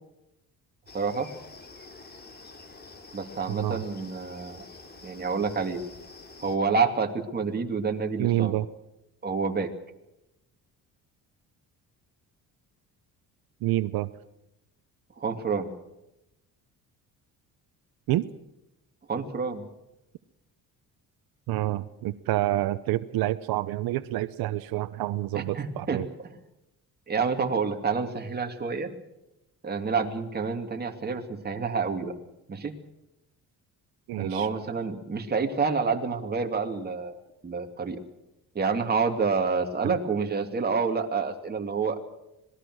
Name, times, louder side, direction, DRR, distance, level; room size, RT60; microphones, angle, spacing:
sound 1, 0.9-6.6, left 3 dB, 30° left, 3.1 m, -47 dB
voice 1, 0.9-1.3 3.1-4.6 5.0-5.8 6.4-8.5 9.2-9.7 15.2-15.7 19.1-19.6 25.3-26.0 27.1-28.9 29.6-32.2 32.5-32.7 34.2-37.2 37.4-38.0 38.5-42.1, right 5 dB, 25° right, 3 dB, 2.9 m, -28 dB
voice 2, 3.5-3.8 8.2-8.7 13.6-14.1 18.1-18.2 21.5-26.1 34.1-34.5 39.8-40.0, right 15 dB, 85° right, 13 dB, 0.9 m, -28 dB
26.0 x 19.5 x 6.4 m, 0.89 s
cardioid pair, 120°, 35 cm